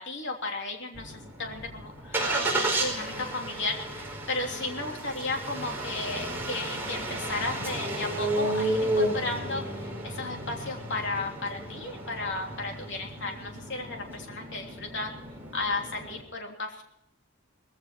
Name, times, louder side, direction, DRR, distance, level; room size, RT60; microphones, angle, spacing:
voice 1, 0.0-15.1 15.5-16.8, left 3 dB, 55° left, 2 dB, 3.2 m, -34 dB
Engine starting, 0.9-16.2, right 1 dB, 10° right, 4.7 m, -33 dB
19.0 x 16.0 x 4.4 m, 0.74 s
head